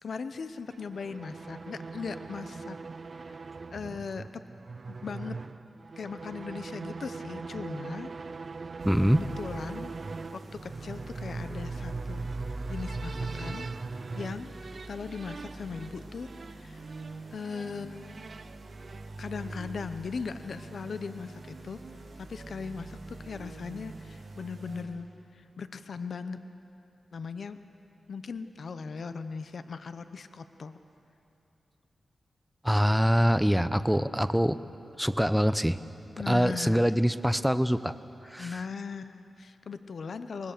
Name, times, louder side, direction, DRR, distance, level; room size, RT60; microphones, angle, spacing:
voice 1, 0.0-2.8 3.1-3.4 3.7-4.3 4.9-5.4 6.0-8.1 9.1-9.9 10.3-13.7 14.1-14.5 14.9-16.8 17.3-18.2 19.2-21.8 22.2-25.1 25.3-26.4 27.1-27.6 28.1-30.8 36.2-36.8 38.4-40.5, left 5 dB, 70° left, 10 dB, 0.8 m, -39 dB
sound 1, 0.7-19.8, right 4 dB, 50° right, 0.4 m, -41 dB
voice 2, 8.8-9.2 32.6-34.6 35.0-35.8 36.3-37.9 38.2-38.6, equal, 5° right, 13 dB, 0.7 m, -24 dB
sound 2, 8.8-24.8, right 2 dB, 70° right, 5.2 m, -43 dB
24.0 x 20.0 x 6.7 m, 2.9 s
cardioid pair, 75°, 0 cm